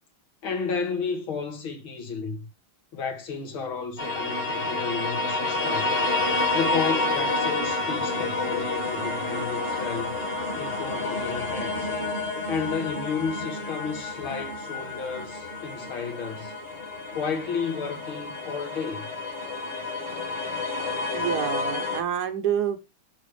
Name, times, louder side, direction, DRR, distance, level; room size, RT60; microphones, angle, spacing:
voice 1, 0.4-2.5 2.9-5.9 6.5-10.2 10.5-12.0 12.5-16.5 17.1-19.1, left 5 dB, 75° left, 2.5 m, -32 dB
sound 1, 4.0-22.0, left 3 dB, 30° left, 1.7 m, -29 dB
voice 2, 21.1-22.8, right 9 dB, 55° right, 1.5 m, -27 dB
6.1 x 5.1 x 4.9 m
omnidirectional pair, 2.3 m